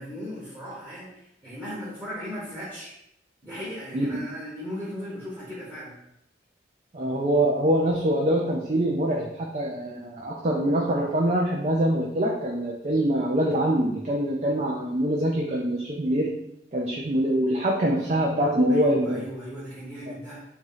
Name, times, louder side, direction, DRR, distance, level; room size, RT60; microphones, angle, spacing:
voice 1, 0.0-2.9 3.4-6.0 18.7-20.4, equal, 10° right, -10 dB, 0.9 m, -37 dB
voice 2, 6.9-16.3 16.7-19.2 20.1-20.2, right 1 dB, 40° right, -2 dB, 0.4 m, -24 dB
3.0 x 2.7 x 3.8 m, 0.79 s
head